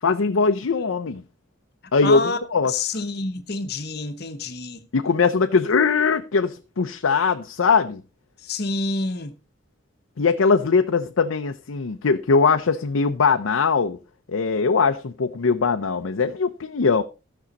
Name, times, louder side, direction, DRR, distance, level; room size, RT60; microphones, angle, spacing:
voice 1, 0.0-1.2 1.9-2.2 2.5-2.7 4.9-8.0 10.2-14.0 14.3-17.0, left 4 dB, 85° left, 0.6 m, -21 dB
voice 2, 2.0-2.4 2.6-4.8 8.4-9.3, left 3 dB, 50° left, 0.9 m, -28 dB
14.5 x 6.3 x 4.0 m
head